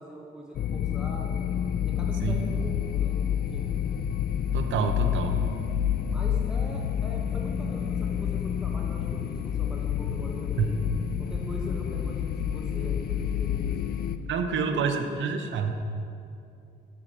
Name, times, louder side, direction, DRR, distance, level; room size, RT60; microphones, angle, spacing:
voice 1, 0.0-1.5 1.8-3.7 6.1-10.8 11.2-14.1 14.5-15.3, equal, 5° right, -2 dB, 0.9 m, -42 dB
sound 1, 0.5-14.2, left 9 dB, 50° left, 0.4 m, -29 dB
voice 2, 4.5-5.4 10.6-10.7 14.3-15.7, right 6 dB, 70° right, 6 dB, 0.7 m, -27 dB
7.4 x 6.2 x 4.3 m, 2.5 s
cardioid pair, 90°, 20 cm